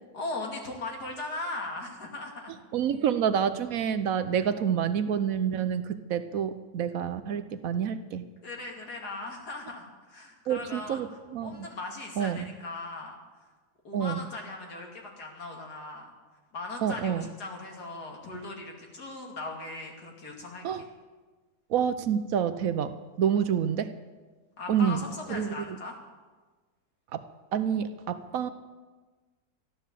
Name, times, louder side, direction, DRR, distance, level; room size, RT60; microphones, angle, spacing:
voice 1, 0.1-2.6 8.4-11.0 11.4-13.1 13.8-16.1 16.5-20.6 24.6-26.0, left 2 dB, 85° left, 0 dB, 3.0 m, -38 dB
voice 2, 2.7-8.3 10.5-11.6 12.2-12.5 13.9-14.3 16.8-17.2 20.6-20.8 21.7-23.9 24.7-25.0 25.3-25.8 27.1-27.2 27.5-28.5, right 8 dB, 65° right, 11 dB, 1.1 m, -28 dB
12.5 x 12.0 x 7.4 m, 1.3 s
omnidirectional pair, 1.7 m